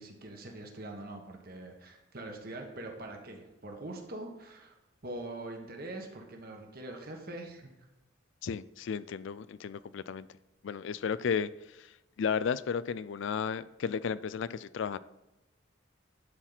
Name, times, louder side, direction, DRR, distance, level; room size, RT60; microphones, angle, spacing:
voice 1, 0.0-4.8 5.0-7.7, right 2 dB, 45° right, 2 dB, 1.3 m, -43 dB
voice 2, 8.4-10.3 10.6-11.5 12.2-15.0, left 6 dB, 65° left, 17 dB, 0.3 m, -33 dB
11.5 x 4.4 x 4.0 m, 1.0 s
head